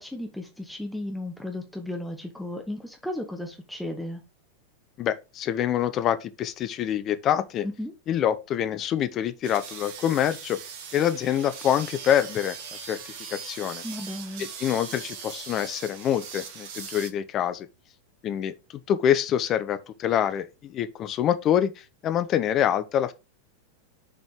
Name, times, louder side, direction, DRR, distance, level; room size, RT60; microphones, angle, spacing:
voice 1, 0.0-4.2 7.6-7.9 13.8-14.5, left 1 dB, 5° left, 1.1 m, -34 dB
voice 2, 5.0-7.7 8.1-10.6 10.9-13.8 14.4-17.7 18.2-18.5 18.9-23.1, left 10 dB, 30° left, 0.6 m, -26 dB
sound 1, 9.4-17.1, right 6 dB, 50° right, 1.4 m, -40 dB
6.6 x 4.1 x 4.9 m
figure-of-eight pair, 90°, 0 cm